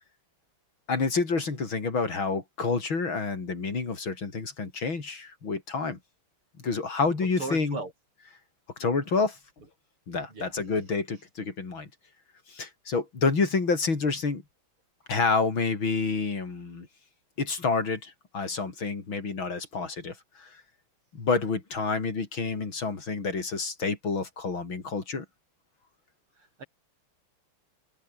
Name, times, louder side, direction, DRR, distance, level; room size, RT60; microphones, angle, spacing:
voice 1, 0.9-6.0 6.6-7.8 8.8-9.4 10.1-11.9 12.5-14.4 15.1-16.9 17.4-20.6 21.1-25.2, left 4 dB, 65° left, 4.6 m, -28 dB
voice 2, 7.4-7.9 10.3-10.5 26.6-26.7, right 3 dB, 80° right, 7.1 m, -36 dB
omnidirectional pair, 2.4 m